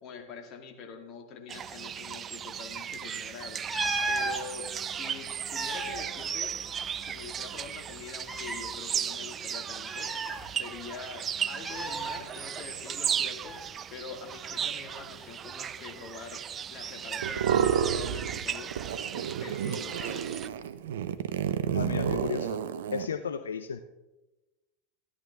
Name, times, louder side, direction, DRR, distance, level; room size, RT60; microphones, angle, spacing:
voice 1, 0.0-3.6 4.1-6.6 7.0-13.6 13.9-16.4 16.7-18.8 19.2-20.4, left 5 dB, 45° left, 4 dB, 2.3 m, -44 dB
sound 1, 1.5-20.5, right 8 dB, 30° right, 0.4 m, -36 dB
sound 2, 3.7-4.4 5.3-7.0 7.3-7.4 8.2-8.7 9.8-10.9 11.6-12.2 13.4-13.7, right 3 dB, 10° right, 1.4 m, -34 dB
sound 3, 17.2-18.4 18.7-23.1, right 9 dB, 65° right, 0.7 m, -30 dB
voice 2, 21.7-22.6 22.9-23.8, left 7 dB, 80° left, 10 dB, 0.5 m, -34 dB
13.5 x 11.5 x 3.6 m, 1.0 s
figure-of-eight pair, 90°, 0 cm